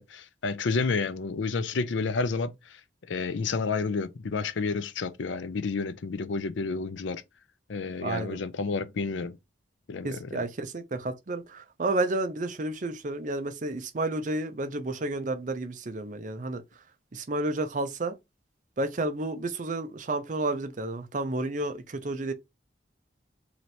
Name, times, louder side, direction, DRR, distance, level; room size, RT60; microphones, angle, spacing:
voice 1, 0.0-2.5 3.1-7.2 7.7-9.4 9.9-10.4, left 4 dB, 90° left, 0.5 m, -30 dB
voice 2, 8.0-8.4 10.0-16.6 17.1-18.1 18.8-22.3, right 2 dB, 45° right, 0.6 m, -31 dB
3.2 x 3.0 x 4.1 m
head